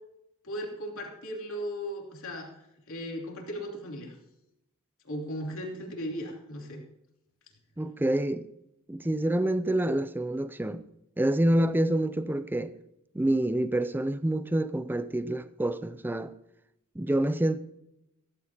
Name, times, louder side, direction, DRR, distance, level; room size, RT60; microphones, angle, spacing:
voice 1, 0.4-2.5 2.9-4.1 5.1-6.8, equal, 65° left, 3.1 m, -37 dB
voice 2, 7.8-8.5 8.9-10.8 11.2-12.7 13.1-16.3 17.0-17.6, right 1 dB, 10° right, 0.4 m, -27 dB
15.5 x 14.5 x 2.9 m
head